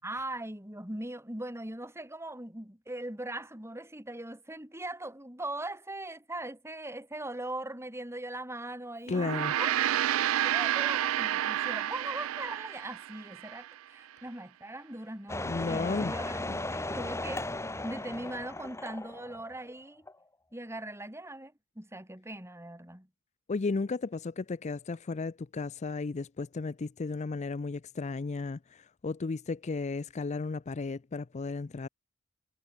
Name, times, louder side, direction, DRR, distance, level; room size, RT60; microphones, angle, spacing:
voice 1, 0.0-9.3 9.6-9.7 10.2-17.4 17.8-20.1 20.5-23.1, right 1 dB, 15° right, 5.8 m, -40 dB
voice 2, 9.1-9.6 15.4-16.2 16.5-16.6 23.5-31.9, left 3 dB, 35° left, 0.4 m, -34 dB
Gong, 9.1-13.7, right 12 dB, 80° right, 0.3 m, -30 dB
sound 1, 15.3-19.8 20.1-20.2, left 2 dB, 15° left, 2.5 m, -36 dB
head